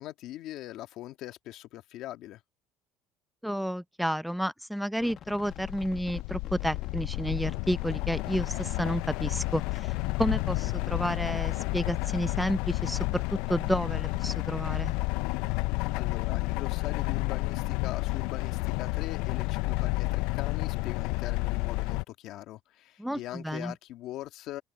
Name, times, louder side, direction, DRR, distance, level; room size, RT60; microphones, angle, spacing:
voice 1, 0.0-2.4 15.9-24.6, left 14 dB, 65° left, 1.7 m, -41 dB
voice 2, 3.4-14.9 23.0-23.7, equal, ahead, 0.5 m, -31 dB
sound 1, 5.0-11.2, left 9 dB, 45° left, 1.4 m, -47 dB
sound 2, 5.5-22.0, left 22 dB, 85° left, 0.3 m, -31 dB
cardioid pair, 130°, 0 cm